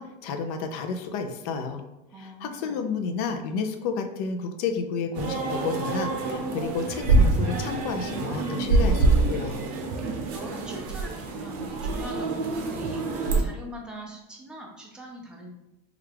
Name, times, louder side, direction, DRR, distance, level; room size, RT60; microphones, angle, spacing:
voice 1, 0.0-1.8 2.2-9.6, left 5 dB, 70° left, 6 dB, 0.5 m, -31 dB
voice 2, 2.1-2.8 10.3-13.0 13.4-15.5, equal, 5° right, -2 dB, 0.4 m, -42 dB
sound 1, 5.1-13.4, right 3 dB, 65° right, 0.7 m, -25 dB
3.2 x 2.4 x 3.3 m, 0.93 s
cardioid pair, 170°, 21 cm